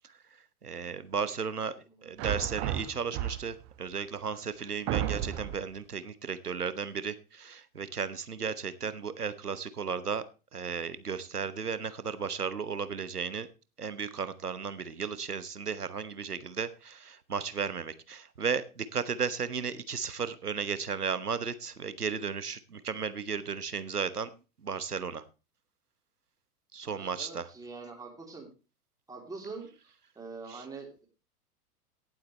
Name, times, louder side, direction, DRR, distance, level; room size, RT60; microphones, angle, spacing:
voice 1, 0.6-1.7 2.0-10.2 10.5-13.5 13.8-24.3 24.6-25.2 26.7-27.5 30.5-30.6, right 6 dB, 80° right, 14 dB, 1.1 m, -34 dB
sound 1, 2.2-3.7 4.3-4.4 4.9-5.7, right 12 dB, 30° right, 1.2 m, -32 dB
voice 2, 26.8-28.5 29.1-31.1, right 4 dB, 10° right, 0 dB, 3.2 m, -44 dB
17.5 x 7.7 x 3.2 m, 0.31 s
figure-of-eight pair, 100°, 45 cm